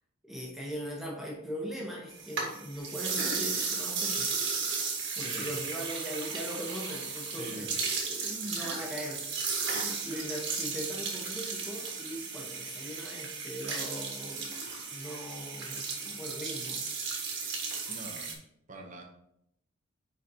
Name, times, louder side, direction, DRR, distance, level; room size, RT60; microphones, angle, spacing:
voice 1, 0.2-4.3 5.2-9.2 9.6-14.6 14.9-16.8, equal, ahead, -3 dB, 1.0 m, -40 dB
sound 1, 2.1-18.3, right 5 dB, 60° right, 1.5 m, -35 dB
voice 2, 5.2-5.6 7.3-7.8 17.9-18.3 18.7-19.0, right 1 dB, 35° right, 2 dB, 0.8 m, -44 dB
9.5 x 4.0 x 2.8 m, 0.77 s
head